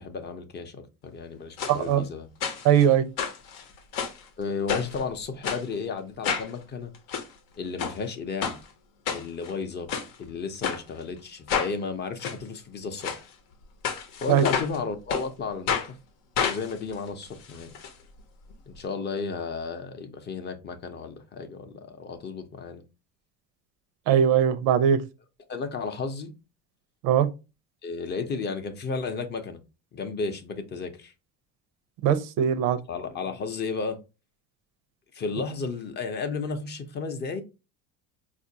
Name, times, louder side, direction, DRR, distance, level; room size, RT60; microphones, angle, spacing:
voice 1, 0.0-2.3 4.4-6.9 7.6-8.6 9.1-9.9 10.2-13.2 14.2-16.0 16.4-17.7 18.7-22.8 25.5-26.3 27.8-29.6 29.9-31.1 32.9-34.0 35.1-37.4, left 4 dB, 30° left, 0.5 m, -33 dB
sound 1, 1.6-1.8 2.4-2.9 3.2-4.2 4.7-5.0 5.4-5.6 6.2-6.5 6.9-7.3 7.8-8.0 8.4-8.6 9.1-9.5 9.9-10.1 10.6-10.8 11.5-11.7 12.2-12.4 13.0-13.2 13.8-14.8 15.1-15.3 15.7-15.9 16.4-17.9 18.2-18.3 18.5-18.6, left 7 dB, 85° left, 0.8 m, -29 dB
voice 2, 1.7-2.0 2.6-3.0 14.3-14.4 24.1-25.0 27.0-27.3 32.0-32.8, right 9 dB, 80° right, 0.6 m, -20 dB
4.4 x 2.4 x 2.7 m
cardioid pair, 130°, 33 cm